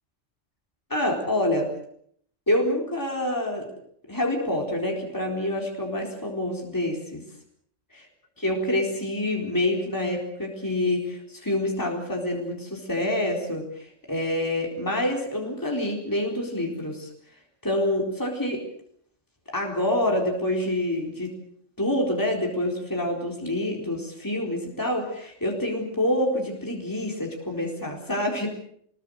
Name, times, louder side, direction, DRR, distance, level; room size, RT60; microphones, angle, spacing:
voice 1, 0.9-1.7 2.5-3.7 4.1-7.2 8.4-17.1 17.6-18.6 19.5-21.3 21.8-28.5, left 1 dB, 15° left, 0 dB, 4.3 m, -27 dB
25.0 x 21.5 x 6.6 m, 0.66 s
omnidirectional pair, 1.2 m